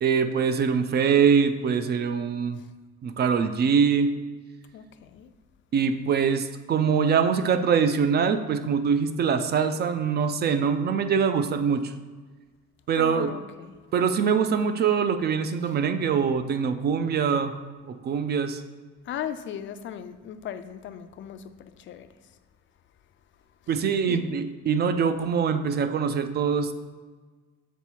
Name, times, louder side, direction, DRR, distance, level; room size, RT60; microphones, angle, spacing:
voice 1, 0.0-2.6 3.0-4.2 5.7-11.9 12.9-13.3 13.9-17.6 17.8-18.6 23.7-26.7, right 6 dB, 35° right, 0.4 m, -23 dB
voice 2, 4.7-5.3 13.0-13.7 19.0-22.3 24.1-24.2, left 9 dB, 45° left, 0.4 m, -38 dB
7.1 x 4.0 x 4.5 m
cardioid pair, 165°, 29 cm